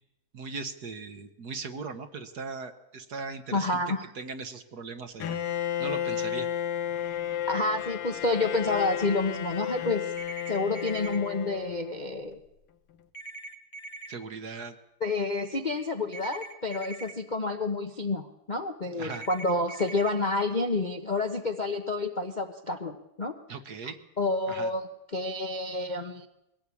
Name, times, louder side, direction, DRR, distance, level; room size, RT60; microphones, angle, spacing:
voice 1, 0.3-3.8 4.1-5.4 5.8-6.5 14.1-14.8 19.0-19.3 23.5-24.0 24.5-24.7, right 4 dB, 55° right, 8 dB, 1.6 m, -38 dB
voice 2, 3.5-4.0 7.5-10.1 10.5-12.4 15.0-23.3 24.2-26.3, left 3 dB, 35° left, 4 dB, 0.8 m, -29 dB
Bowed string instrument, 5.2-12.1, left 10 dB, 85° left, 2.0 m, -32 dB
sound 1, 10.2-11.2 13.1-14.1 16.1-17.1 19.1-20.1, right 2 dB, 60° left, 2.9 m, -42 dB
22.0 x 17.0 x 8.5 m, 0.90 s
omnidirectional pair, 2.3 m